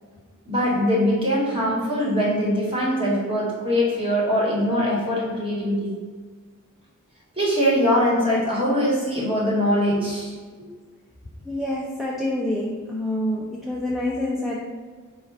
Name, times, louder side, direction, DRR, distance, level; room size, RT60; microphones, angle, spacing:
voice 1, 0.4-6.0 7.4-10.4, equal, 25° right, -5 dB, 1.2 m, -22 dB
voice 2, 11.5-14.7, left 1 dB, ahead, -4 dB, 0.3 m, -27 dB
4.5 x 2.3 x 4.6 m, 1.5 s
head